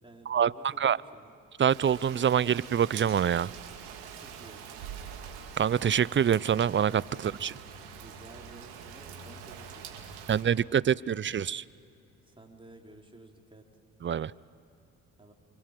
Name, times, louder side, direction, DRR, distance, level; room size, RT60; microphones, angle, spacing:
voice 1, 0.0-1.3 4.2-4.7 8.0-10.1 12.3-13.6 15.2-15.3, right 1 dB, 15° right, 1 dB, 4.4 m, -52 dB
voice 2, 1.6-3.5 5.6-7.6 10.3-11.6 14.0-14.3, right 8 dB, 30° right, 22 dB, 0.6 m, -25 dB
Rain, 1.7-10.4, right 7 dB, 85° right, 2.4 m, -45 dB
27.5 x 25.0 x 7.7 m, 2.8 s
hypercardioid pair, 50°, 37 cm